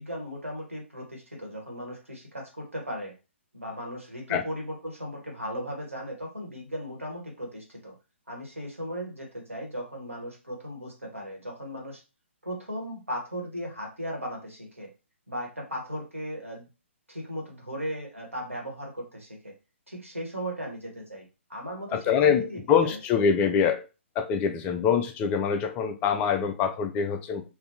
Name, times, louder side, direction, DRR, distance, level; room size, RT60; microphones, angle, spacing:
voice 1, 0.0-3.1 3.5-8.0 8.3-12.0 12.4-14.9 15.3-16.7 17.1-19.5 19.9-23.0, equal, 90° right, 1.6 m, -37 dB
voice 2, 21.9-23.9 24.2-27.5, left 7 dB, 20° left, 0.4 m, -24 dB
3.4 x 2.6 x 2.7 m
figure-of-eight pair, 130°, 7 cm